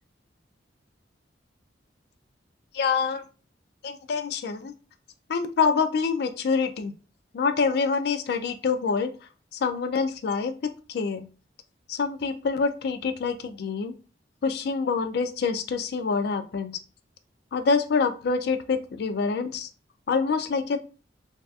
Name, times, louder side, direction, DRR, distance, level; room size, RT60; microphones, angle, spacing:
voice 1, 2.7-3.2 3.8-4.7 5.3-6.9 7.3-9.1 9.5-11.3 11.9-13.9 14.4-16.7 17.5-19.7 20.1-20.8, left 5 dB, 60° left, 8 dB, 0.3 m, -26 dB
2.6 x 2.3 x 2.3 m, 0.35 s
head